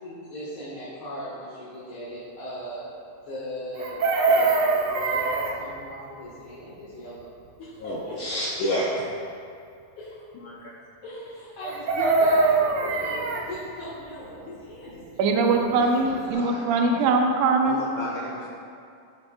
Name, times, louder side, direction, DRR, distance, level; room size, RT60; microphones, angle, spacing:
voice 1, 0.0-2.9 3.3-8.4 10.0-10.6 11.0-17.0, equal, 50° left, -10 dB, 2.1 m, -38 dB
Chicken rooster, 3.8-5.6 11.6-13.5 15.7-15.8 16.1-16.3, right 3 dB, 90° right, 1.1 m, -22 dB
voice 2, 7.8-9.1 10.3-10.7 15.7-16.7 17.6-18.5, left 1 dB, 75° left, -5 dB, 1.2 m, -31 dB
voice 3, 15.2-17.8, right 3 dB, 75° right, 2 dB, 1.9 m, -22 dB
13.5 x 7.0 x 2.3 m, 2.4 s
omnidirectional pair, 3.3 m